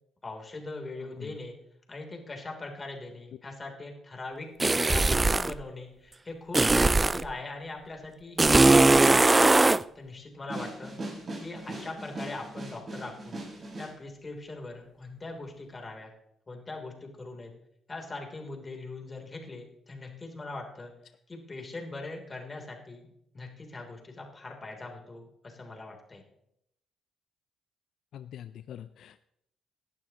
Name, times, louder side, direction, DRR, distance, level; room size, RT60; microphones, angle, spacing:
voice 1, 0.2-1.5 1.9-4.5 4.7-10.9 11.4-13.4 13.7-16.1 16.5-17.5 17.9-20.9 21.3-23.1 23.3-26.2, left 2 dB, 30° left, 1 dB, 3.3 m, -41 dB
sound 1, 4.6-5.5 6.5-7.3 8.4-9.8, right 2 dB, 20° right, 0.3 m, -20 dB
sound 2, 10.5-13.9, right 2 dB, 40° right, 6.1 m, -39 dB
voice 2, 28.1-29.2, left 10 dB, 70° left, 12 dB, 0.4 m, -44 dB
18.5 x 11.5 x 3.0 m, 0.78 s
cardioid pair, 90°, 0 cm